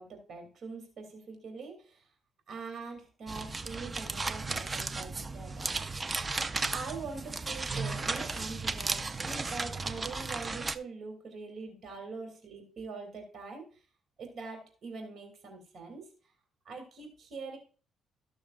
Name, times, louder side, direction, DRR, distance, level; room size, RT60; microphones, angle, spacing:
voice 1, 0.0-2.0 2.5-5.7 6.7-13.6 14.2-16.0 16.6-17.6, right 4 dB, 60° right, 3 dB, 2.6 m, -43 dB
sound 1, 3.3-10.8, right 3 dB, 25° right, 0.6 m, -35 dB
14.0 x 6.3 x 2.4 m, 0.38 s
cardioid pair, 90°, 0 cm